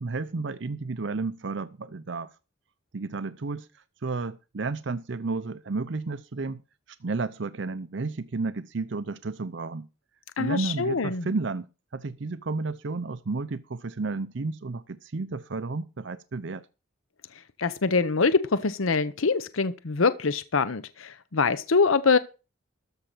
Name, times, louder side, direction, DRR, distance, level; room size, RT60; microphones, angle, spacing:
voice 1, 0.0-2.3 2.9-6.6 6.9-9.9 10.4-11.7 11.9-16.7, right 3 dB, 60° right, 0.6 m, -32 dB
voice 2, 10.4-11.3 17.6-22.2, left 4 dB, 80° left, 0.8 m, -24 dB
13.5 x 5.5 x 6.7 m
head